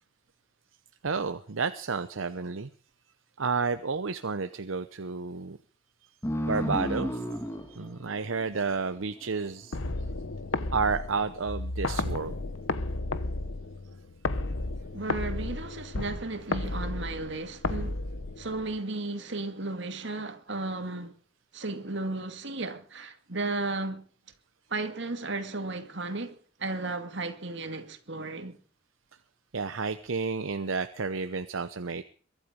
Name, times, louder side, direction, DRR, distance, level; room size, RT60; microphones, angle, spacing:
voice 1, 1.0-2.7 3.4-5.6 6.5-7.2 7.5-9.8 10.7-12.4 29.5-32.0, right 4 dB, 80° right, 0.8 m, -31 dB
sound 1, 6.2-9.4, equal, 15° left, 2.3 m, -33 dB
sound 2, 9.7-18.8, left 2 dB, 85° left, 1.1 m, -33 dB
voice 2, 14.9-18.0 18.4-21.1 21.5-24.0 24.7-28.6, right 2 dB, 60° right, 2.3 m, -34 dB
22.5 x 12.0 x 5.2 m
head